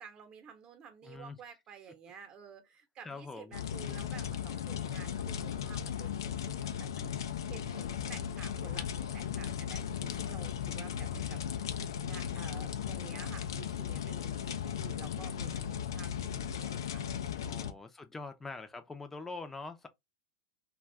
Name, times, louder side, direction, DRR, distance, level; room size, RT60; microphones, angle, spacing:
voice 1, 0.0-7.1 7.5-11.4 12.0-17.1 17.4-17.7, right 7 dB, 35° right, 0.9 m, -52 dB
voice 2, 1.0-1.4 3.0-3.6 17.4-19.9, left 3 dB, 10° left, 0.6 m, -44 dB
sound 1, 3.5-17.7, left 8 dB, 80° left, 0.4 m, -37 dB
2.5 x 2.4 x 3.1 m
hypercardioid pair, 105°, 2 cm